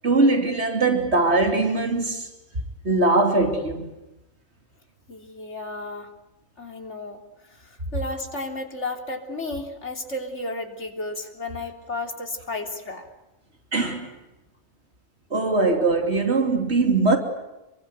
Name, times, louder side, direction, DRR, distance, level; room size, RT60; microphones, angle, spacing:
voice 1, 0.0-2.3 2.8-3.9 13.7-14.1 15.3-17.2, right 3 dB, 70° right, 3.3 m, -21 dB
voice 2, 5.1-6.1 6.6-13.1, left 2 dB, 90° left, 3.8 m, -33 dB
28.0 x 23.5 x 8.2 m
omnidirectional pair, 1.2 m